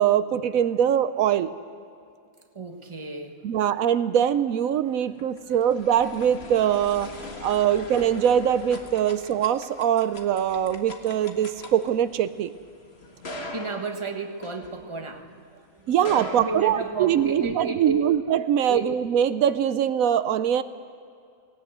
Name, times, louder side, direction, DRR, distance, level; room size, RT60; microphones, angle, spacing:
voice 1, 0.0-1.5 3.4-7.1 7.4-12.5 15.9-20.6, right 9 dB, 85° right, 13 dB, 1.1 m, -22 dB
voice 2, 2.5-3.4 4.8-5.1 5.5-5.6 9.1-9.2 13.5-18.1 18.7-18.9, right 3 dB, 20° right, 4 dB, 1.4 m, -33 dB
sound 1, 4.9-15.3 15.9-17.4, left 2 dB, 50° left, 1.9 m, -41 dB
18.0 x 18.0 x 7.9 m, 2.4 s
omnidirectional pair, 1.4 m